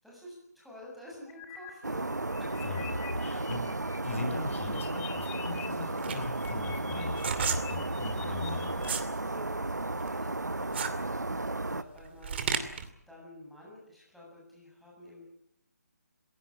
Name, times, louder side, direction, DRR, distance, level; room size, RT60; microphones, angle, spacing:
voice 1, 0.0-2.5 8.0-9.6 10.0-12.6 13.1-15.3, left 1 dB, ahead, -5 dB, 7.7 m, -50 dB
sound 1, 1.3-1.7 2.1-4.0 4.3-5.7 6.0-8.9, left 10 dB, 15° left, 2.8 m, -46 dB
sound 2, 1.8-11.8, right 2 dB, 85° right, 1.1 m, -34 dB
voice 2, 2.6-3.6 4.0-8.7, left 3 dB, 50° left, 4 dB, 6.7 m, -38 dB
sound 3, 6.0-9.1 9.5-12.9, right 6 dB, 40° right, 2.6 m, -34 dB
27.0 x 16.5 x 8.8 m, 0.72 s
figure-of-eight pair, 145°, 9 cm